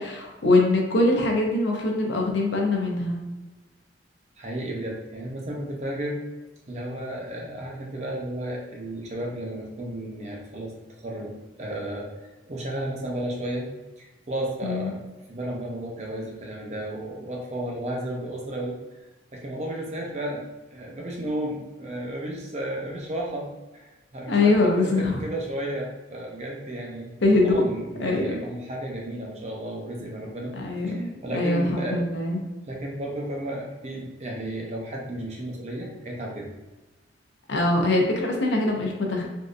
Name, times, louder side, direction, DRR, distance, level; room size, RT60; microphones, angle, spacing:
voice 1, 0.0-3.2 14.6-14.9 24.3-25.2 27.2-27.5 28.0-28.4 30.6-32.4 37.5-39.3, left 2 dB, 65° left, 0 dB, 0.6 m, -23 dB
voice 2, 4.4-6.2 6.7-10.7 11.0-12.1 12.5-13.7 14.0-15.0 15.3-18.8 19.3-27.1 27.4-30.6 30.9-32.1 32.7-36.5, right 1 dB, 35° right, -1 dB, 0.6 m, -33 dB
3.5 x 2.5 x 2.5 m, 1.1 s
head